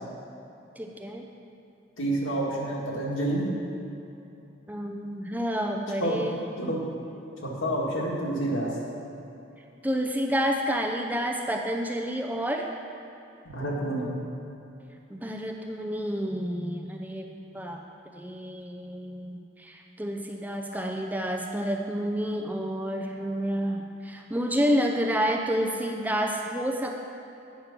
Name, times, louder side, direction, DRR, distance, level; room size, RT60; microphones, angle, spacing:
voice 1, 0.8-1.2 4.7-6.4 9.8-12.7 15.1-17.8 18.1-27.0, equal, 10° right, 2 dB, 0.5 m, -29 dB
voice 2, 2.0-3.5 6.0-6.2 6.6-6.8 7.4-8.7 13.4-14.1, right 1 dB, 85° left, -4 dB, 1.9 m, -28 dB
9.3 x 5.2 x 5.9 m, 2.8 s
head